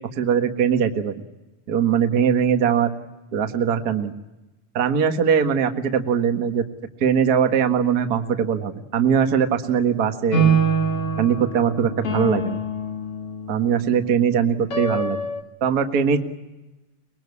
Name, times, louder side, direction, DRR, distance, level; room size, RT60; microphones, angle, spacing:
voice 1, 0.1-1.1 1.7-2.9 3.3-4.1 4.7-6.6 7.0-10.6 11.2-12.6 13.5-15.2 15.6-16.2, right 7 dB, 40° right, 6 dB, 1.5 m, -21 dB
sound 1, 10.3-15.4, right 3 dB, 50° left, 2.3 m, -25 dB
25.0 x 22.0 x 9.7 m, 1.0 s
omnidirectional pair, 3.9 m